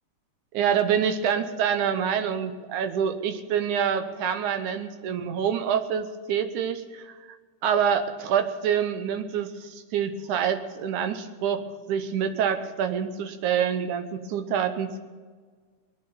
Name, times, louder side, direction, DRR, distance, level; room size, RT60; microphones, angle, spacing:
voice 1, 0.5-7.1 7.6-15.0, right 8 dB, 75° right, 8 dB, 2.3 m, -26 dB
20.5 x 9.7 x 6.9 m, 1.5 s
omnidirectional pair, 3.7 m